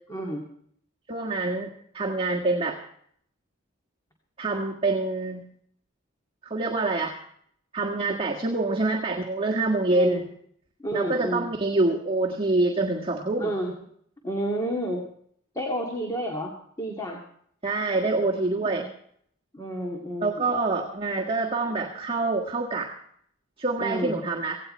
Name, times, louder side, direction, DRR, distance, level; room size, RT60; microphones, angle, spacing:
voice 1, 0.1-0.4 9.9-10.2 10.8-11.5 13.4-13.7 14.2-15.0 15.5-16.5 16.8-17.2 18.6-18.9 19.5-20.5 23.8-24.2, equal, 15° left, 0 dB, 2.1 m, -30 dB
voice 2, 1.1-2.8 4.4-5.5 6.4-7.2 7.7-10.2 10.9-13.5 17.6-18.9 20.2-22.9 23.6-24.6, right 2 dB, 25° right, -1 dB, 1.6 m, -26 dB
17.0 x 17.0 x 4.4 m, 0.65 s
head